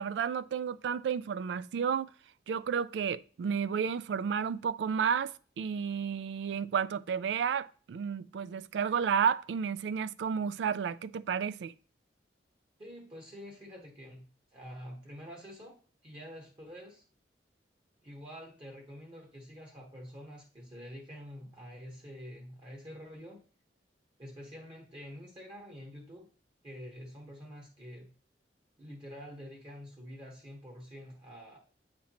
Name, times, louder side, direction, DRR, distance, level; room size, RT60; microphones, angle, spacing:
voice 1, 0.0-2.1 2.5-11.7, right 7 dB, 80° right, 0.3 m, -32 dB
voice 2, 12.8-15.8 16.0-17.0 18.0-23.4 24.2-26.3 26.6-28.1 28.8-31.6, equal, 30° right, 1.0 m, -47 dB
8.4 x 4.3 x 2.9 m
head